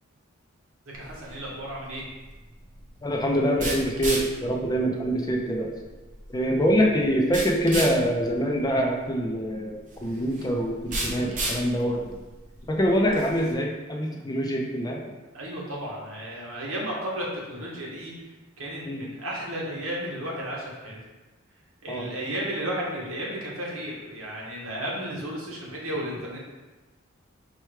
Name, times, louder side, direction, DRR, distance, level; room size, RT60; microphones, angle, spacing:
sound 1, 0.9-13.5, right 2 dB, 40° right, 0.8 m, -36 dB
voice 1, 0.9-2.0 15.3-18.1 18.6-21.0 21.8-26.4, right 1 dB, 80° right, -4 dB, 1.2 m, -33 dB
voice 2, 3.0-5.7 6.3-12.1 12.7-15.0 18.8-19.0 21.9-22.1, equal, 20° left, 0 dB, 0.5 m, -25 dB
4.5 x 2.2 x 4.6 m, 1.2 s
head